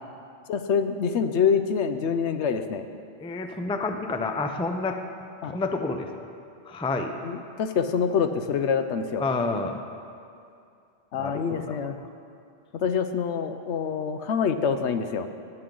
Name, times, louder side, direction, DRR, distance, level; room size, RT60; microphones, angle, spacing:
voice 1, 0.5-2.8 5.4-5.5 7.2-9.2 11.1-12.0 12.7-15.3, left 6 dB, 75° left, 9 dB, 1.0 m, -26 dB
voice 2, 3.2-5.0 5.5-6.3 6.7-7.1 9.2-9.8 11.1-11.8, left 3 dB, 10° left, 5 dB, 0.3 m, -29 dB
19.5 x 7.8 x 3.8 m, 2.5 s
omnidirectional pair, 1.2 m